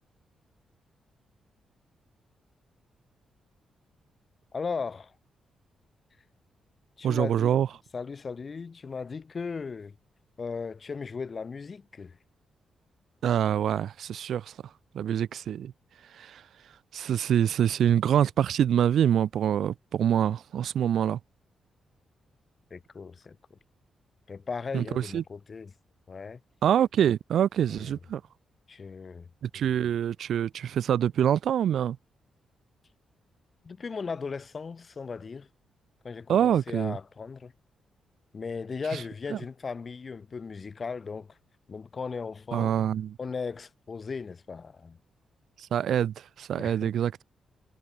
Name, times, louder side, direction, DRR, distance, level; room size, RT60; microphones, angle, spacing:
voice 1, 4.5-5.1 7.0-7.6 7.9-10.0 10.4-12.2 22.7-23.6 24.3-25.7 26.1-26.4 27.7-27.9 28.7-29.3 33.6-35.5 36.0-37.5 38.3-41.4 41.7-42.8 43.2-45.0 46.6-46.9, left 5 dB, 30° left, 3.3 m, -37 dB
voice 2, 7.0-7.7 13.2-14.4 14.9-15.7 16.2-16.4 16.9-21.2 24.7-25.2 26.6-28.2 29.4-32.0 36.3-37.0 42.5-43.1 45.7-47.2, right 9 dB, 65° right, 1.6 m, -25 dB
wide cardioid pair, 170°, 0 cm